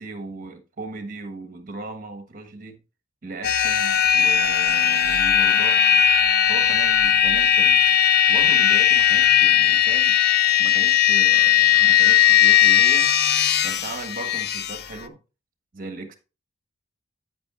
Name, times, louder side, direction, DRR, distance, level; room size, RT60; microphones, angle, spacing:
voice 1, 0.0-2.8 3.2-5.8 6.5-7.8 8.3-10.2 10.6-13.1 13.6-15.2 15.7-16.1, right 2 dB, 40° right, 1.3 m, -37 dB
sound 1, 3.4-14.8, left 10 dB, 50° left, 0.5 m, -18 dB
9.3 x 8.6 x 2.4 m
head